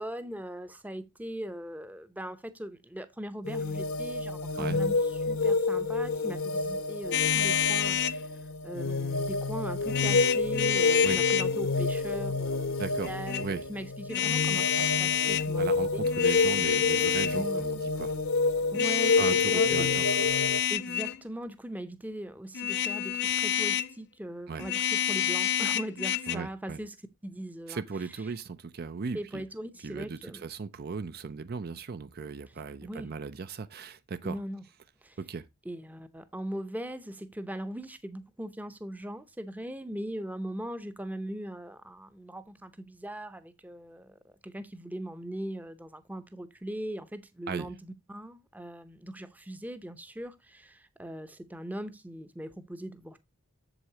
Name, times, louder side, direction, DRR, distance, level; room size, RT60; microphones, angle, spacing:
voice 1, 0.0-8.3 8.6-16.0 17.3-17.6 18.7-20.0 20.7-27.0 27.2-27.8 29.1-30.4 32.8-33.1 34.2-34.6 35.0-35.2 35.6-53.2, right 1 dB, 5° right, 0.7 m, -40 dB
sound 1, 3.4-20.6, left 3 dB, 70° left, 1.0 m, -29 dB
sound 2, 7.1-8.2 9.9-11.5 13.0-13.4 14.1-15.5 16.0-17.4 18.7-21.2 22.5-23.9 24.6-26.4, left 10 dB, 50° left, 0.5 m, -28 dB
voice 2, 12.8-13.1 13.4-13.6 15.6-18.2 19.2-20.3 24.5-24.7 26.3-26.8 27.7-29.4 29.8-34.4 35.2-35.5 47.5-47.7, right 4 dB, 45° right, 0.5 m, -37 dB
7.9 x 7.4 x 2.8 m
head